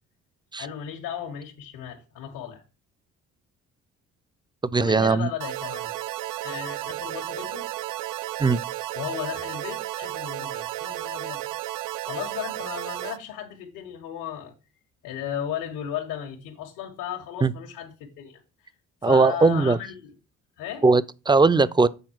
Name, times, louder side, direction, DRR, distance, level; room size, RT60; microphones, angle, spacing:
voice 1, 0.6-2.6 4.8-5.9 6.4-7.7 8.9-11.4 12.1-14.5 15.0-18.7 19.0-20.1 20.6-20.8, left 9 dB, 75° left, 1.5 m, -35 dB
voice 2, 4.7-5.3 8.4-8.6 17.4-17.5 19.0-19.8 20.8-21.9, right 4 dB, 15° right, 0.5 m, -19 dB
sound 1, 5.4-13.2, right 16 dB, 70° right, 0.5 m, -33 dB
7.9 x 4.1 x 4.7 m
supercardioid pair, 60°, 33 cm